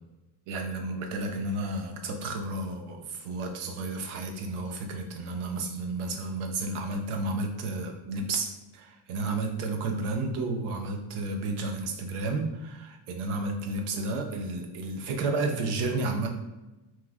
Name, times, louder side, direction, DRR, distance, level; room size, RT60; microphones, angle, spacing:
voice 1, 0.5-16.3, right 2 dB, 85° right, 4 dB, 0.7 m, -32 dB
3.0 x 2.0 x 3.4 m, 1.1 s
cardioid pair, 170°, 49 cm